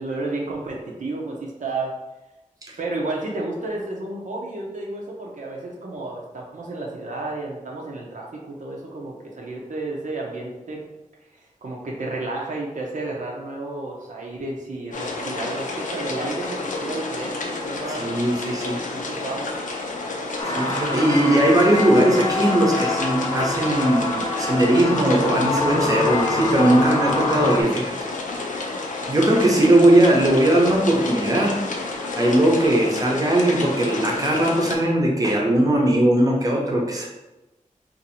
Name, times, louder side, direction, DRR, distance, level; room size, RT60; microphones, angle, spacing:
voice 1, 0.0-1.9 2.8-10.8 11.3-18.1 18.9-19.5, right 2 dB, 70° right, -2 dB, 0.6 m, -31 dB
sound 1, 14.9-34.8, left 3 dB, 80° left, 0.5 m, -30 dB
voice 2, 18.0-18.8 20.4-27.9 28.4-28.8 29.1-31.6 32.1-37.1, right 1 dB, 25° right, -1 dB, 0.7 m, -19 dB
sound 2, 20.4-27.6, left 3 dB, 35° left, 0.6 m, -25 dB
2.7 x 2.5 x 4.1 m, 1.0 s
wide cardioid pair, 110°, 13 cm